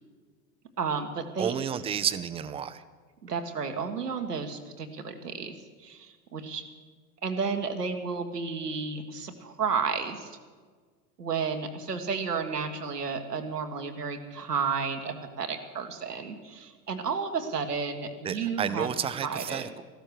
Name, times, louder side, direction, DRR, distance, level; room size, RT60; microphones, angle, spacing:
voice 1, 0.8-1.5 3.2-5.5 5.8-6.6 7.2-10.3 11.2-18.9 19.2-19.7, right 5 dB, 80° right, 5 dB, 1.7 m, -32 dB
voice 2, 1.4-2.8 18.2-19.8, right 8 dB, 15° right, 14 dB, 0.4 m, -31 dB
15.0 x 12.5 x 6.6 m, 1.5 s
figure-of-eight pair, 85°, 46 cm